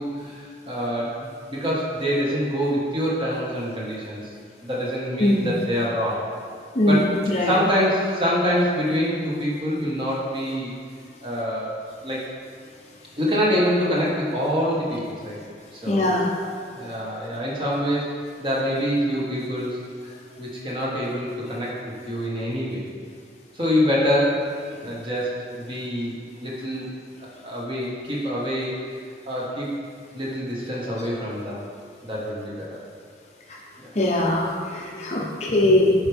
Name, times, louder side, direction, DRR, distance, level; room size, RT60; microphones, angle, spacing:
voice 1, 0.0-4.3 4.6-6.3 6.9-7.0 7.4-10.7 11.2-11.8 12.0-12.2 13.1-15.4 15.7-16.2 16.7-21.7 22.1-22.8 23.5-24.4 24.8-26.9 27.4-28.8 29.2-29.7 30.1-31.6 32.0-32.8 33.8-33.9, equal, 30° right, -5 dB, 1.5 m, -25 dB
voice 2, 5.2-5.5 6.7-7.6 15.9-16.3 24.7-24.8 33.5-33.6 33.9-35.9, left 1 dB, 35° left, -1 dB, 0.7 m, -21 dB
11.0 x 4.7 x 3.5 m, 2.1 s
head